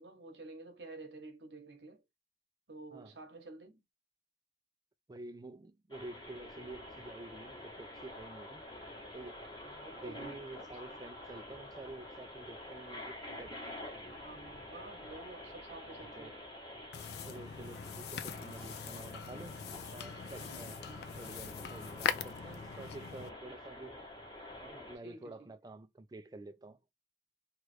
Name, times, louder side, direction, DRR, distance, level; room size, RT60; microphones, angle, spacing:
voice 1, 0.0-2.0 2.7-3.8 9.6-11.0 14.2-16.4 20.4-21.1 25.0-25.5, right 3 dB, 75° right, 0.9 m, -51 dB
voice 2, 5.1-8.6 9.1-9.5 10.0-13.7 16.2-16.4 17.3-19.6 19.9-20.8 21.2-24.0 24.6-26.8, right 2 dB, 20° right, 0.3 m, -49 dB
sound 1, 5.9-25.0, left 1 dB, 25° left, 0.9 m, -48 dB
sound 2, 16.9-23.3, left 7 dB, 60° left, 0.3 m, -41 dB
3.0 x 2.4 x 3.2 m
head